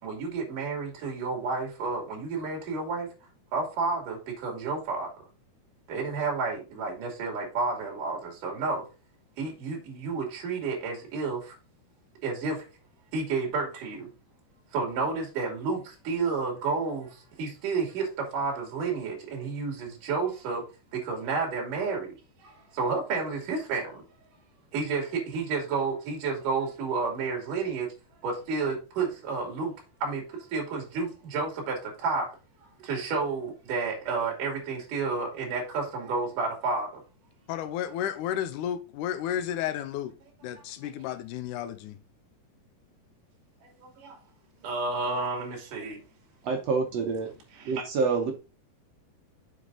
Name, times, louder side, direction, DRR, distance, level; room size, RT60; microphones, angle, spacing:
voice 1, 0.0-3.1 3.5-5.1 5.9-8.8 9.4-11.6 12.2-12.6 13.1-14.1 14.7-20.6 20.9-24.1 24.7-27.9 28.2-29.7 30.0-30.2 30.5-32.3 32.8-37.0 40.5-40.6 43.8-44.2 44.6-46.0 47.5-47.8, right 4 dB, 60° right, 3.9 m, -31 dB
voice 2, 37.5-40.1 40.4-42.0, left 10 dB, 80° left, 1.8 m, -32 dB
voice 3, 46.4-47.3 47.7-48.3, right 4 dB, 75° right, 1.5 m, -27 dB
7.7 x 5.1 x 3.9 m
omnidirectional pair, 4.4 m